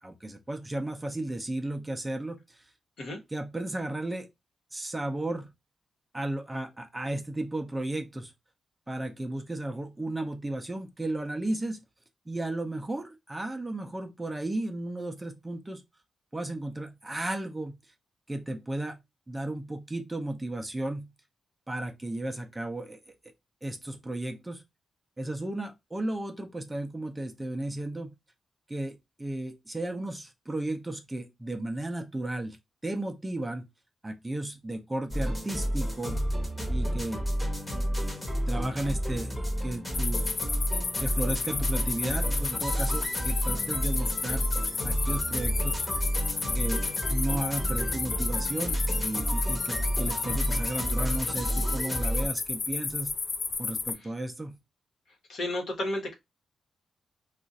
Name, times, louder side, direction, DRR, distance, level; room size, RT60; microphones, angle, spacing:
voice 1, 0.0-2.6 3.3-4.3 4.7-5.5 6.1-8.3 8.9-11.8 12.3-15.8 16.3-17.8 18.3-19.0 19.3-21.1 21.7-23.0 23.6-24.6 25.2-28.1 28.7-32.6 32.8-33.7 34.0-36.2 36.7-37.2 38.5-40.2 41.0-44.5 44.8-45.9 46.5-46.8 47.1-53.2 53.6-54.6, right 1 dB, 15° right, 0.5 m, -34 dB
sound 1, 35.1-52.3, equal, 15° left, 0.9 m, -30 dB
sound 2, 39.9-53.9, left 4 dB, 45° left, 0.4 m, -32 dB
voice 2, 55.3-56.1, left 1 dB, 70° left, 1.1 m, -32 dB
2.4 x 2.4 x 3.9 m
wide cardioid pair, 135°, 0 cm